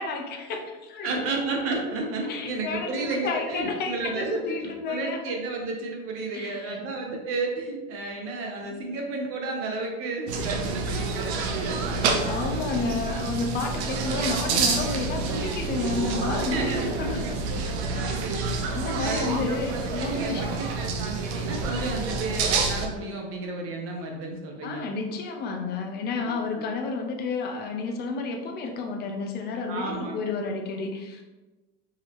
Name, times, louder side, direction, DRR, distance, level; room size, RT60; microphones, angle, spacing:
voice 1, 0.0-1.3 2.2-5.2 6.3-6.8 10.6-10.7 11.7-17.4 17.9-18.3 18.6-20.6 24.6-31.2, left 4 dB, 30° left, 3 dB, 0.6 m, -31 dB
voice 2, 1.0-11.9 13.8-14.1 16.4-16.9 17.9-18.6 19.0-24.8 26.3-26.7 29.7-30.3, right 3 dB, 40° right, 1 dB, 0.9 m, -32 dB
sound 1, 10.3-22.9, right 4 dB, 75° right, 0.8 m, -28 dB
4.8 x 2.8 x 3.5 m, 1.1 s
supercardioid pair, 145°, 33 cm